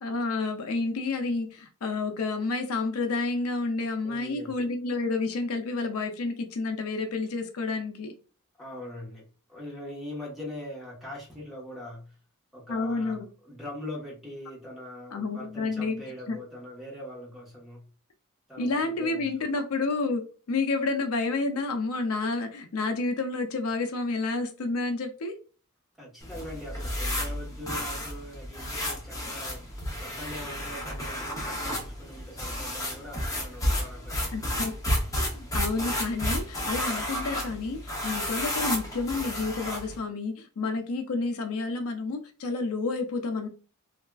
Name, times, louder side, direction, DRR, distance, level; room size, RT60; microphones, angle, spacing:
voice 1, 0.0-8.1 12.7-13.3 15.1-16.4 18.6-20.2 20.5-25.3 34.3-34.7 35.1-43.5, left 3 dB, 70° left, 0.5 m, -30 dB
voice 2, 4.0-4.5 8.6-12.1 12.5-17.8 18.5-19.5 26.0-34.5, left 1 dB, ahead, 1.1 m, -42 dB
sound 1, 26.2-40.0, left 1 dB, 15° left, 0.7 m, -32 dB
3.5 x 2.3 x 2.2 m
head